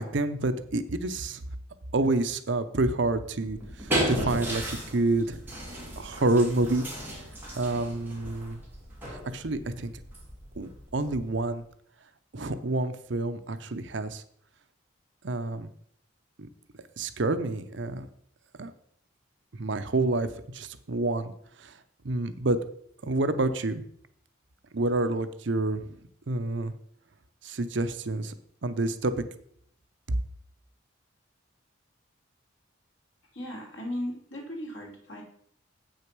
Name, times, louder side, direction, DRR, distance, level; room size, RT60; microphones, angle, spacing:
voice 1, 0.0-1.4 1.9-5.6 6.0-6.8 7.5-8.6 9.0-9.9 10.6-11.6 12.3-14.2 15.2-15.7 16.4-16.5 17.0-18.1 18.6-18.7 19.6-21.3 21.6-21.8 22.0-22.6 23.0-23.8 24.7-26.0 26.3-26.7 27.4-28.3 28.6-29.1 30.1-30.2, right 2 dB, 60° right, 10 dB, 0.7 m, -28 dB
sound 1, 3.4-11.5, right 1 dB, 10° right, 2.7 m, -35 dB
voice 2, 33.3-35.2, left 1 dB, 70° left, -1 dB, 3.3 m, -36 dB
8.0 x 6.5 x 6.0 m, 0.66 s
head